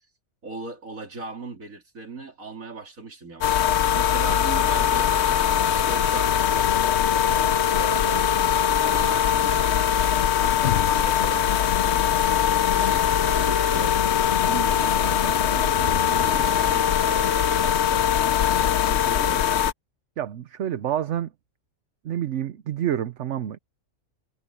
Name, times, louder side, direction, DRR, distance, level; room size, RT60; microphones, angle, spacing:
voice 1, 0.4-5.1 5.6-9.7 10.4-11.5 12.5-14.0 14.5-19.6, right 4 dB, 80° right, 3.7 m, -38 dB
sound 1, 3.4-19.7, left 9 dB, 60° left, 0.9 m, -21 dB
voice 2, 20.2-21.3 22.0-23.6, right 11 dB, 65° right, 1.0 m, -28 dB
omnidirectional pair, 1.4 m